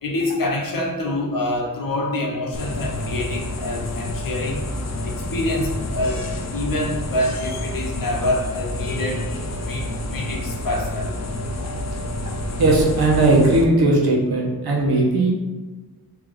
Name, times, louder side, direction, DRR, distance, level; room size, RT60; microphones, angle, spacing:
voice 1, 0.0-6.2 6.5-9.3 9.6-11.1, left 1 dB, 65° left, -1 dB, 0.9 m, -26 dB
sound 1, 2.5-13.6, left 1 dB, 45° left, 0.5 m, -28 dB
voice 2, 12.6-15.3, right 2 dB, 85° right, -3 dB, 1.1 m, -17 dB
3.5 x 2.9 x 3.5 m, 1.2 s
wide cardioid pair, 120°, 36 cm